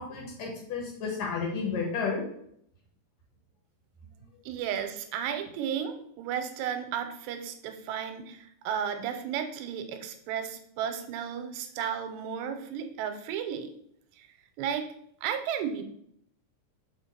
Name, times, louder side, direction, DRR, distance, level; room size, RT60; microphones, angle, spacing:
voice 1, 0.0-2.2, left 5 dB, 60° left, -1 dB, 2.8 m, -32 dB
voice 2, 4.5-13.7 14.6-14.9 15.2-15.8, right 8 dB, 85° right, 7 dB, 2.7 m, -33 dB
5.8 x 5.0 x 5.5 m, 0.70 s
omnidirectional pair, 5.0 m